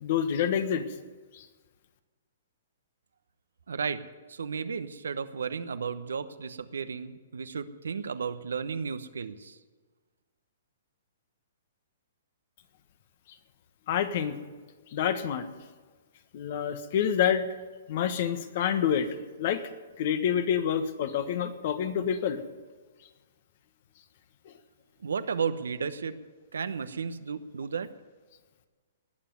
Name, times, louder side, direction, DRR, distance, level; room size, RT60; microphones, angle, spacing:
voice 1, 0.0-0.8 1.3-1.5 13.9-14.4 14.9-15.5 16.3-17.5 17.9-19.1 19.4-19.6 20.0-22.4 24.4-24.5, left 8 dB, 55° left, 10 dB, 1.4 m, -27 dB
voice 2, 3.7-4.0 4.3-9.6 25.0-26.2 26.5-27.9, right 6 dB, 80° right, 11 dB, 1.0 m, -33 dB
19.0 x 7.1 x 9.5 m, 1.4 s
hypercardioid pair, 135°, 0 cm